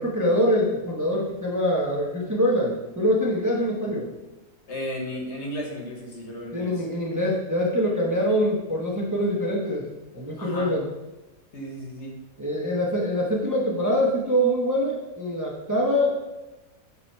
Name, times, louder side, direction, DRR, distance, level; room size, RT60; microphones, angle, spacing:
voice 1, 0.0-4.1 6.5-9.9 10.1-10.9 12.4-16.1, equal, 15° right, -4 dB, 0.8 m, -24 dB
voice 2, 4.7-6.9 10.4-10.7 11.5-12.2, equal, 55° left, 1 dB, 1.3 m, -34 dB
8.5 x 3.1 x 4.3 m, 1.1 s
omnidirectional pair, 1.4 m